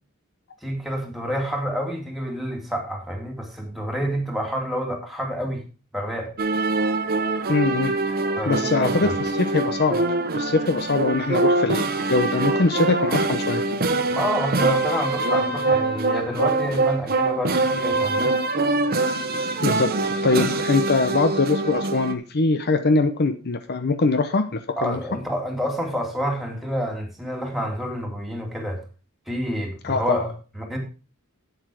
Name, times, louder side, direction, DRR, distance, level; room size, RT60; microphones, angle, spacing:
voice 1, 0.6-5.6 5.9-6.3 8.4-9.1 14.1-18.3 24.8-28.8 29.3-30.8, equal, ahead, 0 dB, 2.5 m, -28 dB
sound 1, 6.4-22.1, right 3 dB, 45° right, 1.1 m, -24 dB
voice 2, 7.5-8.0 8.5-13.6 19.6-25.0 29.8-30.3, left 3 dB, 50° left, 9 dB, 0.8 m, -22 dB
8.3 x 8.0 x 4.7 m, 0.34 s
head